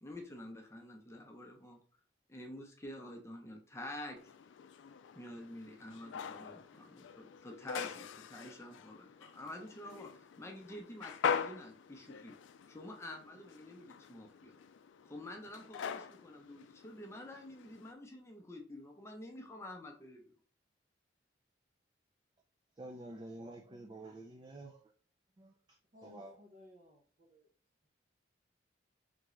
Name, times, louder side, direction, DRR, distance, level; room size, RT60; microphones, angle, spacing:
voice 1, 0.0-1.8 2.3-4.2 5.1-12.3 12.7-14.6 15.0-20.2, left 1 dB, 15° left, 0.7 m, -48 dB
sound 1, 4.2-17.9, left 7 dB, 85° left, 0.3 m, -43 dB
voice 2, 22.8-24.8 25.4-26.3, right 2 dB, 25° right, 0.4 m, -49 dB
voice 3, 25.9-27.5, left 2 dB, 45° right, 0.9 m, -58 dB
3.7 x 3.5 x 3.1 m
head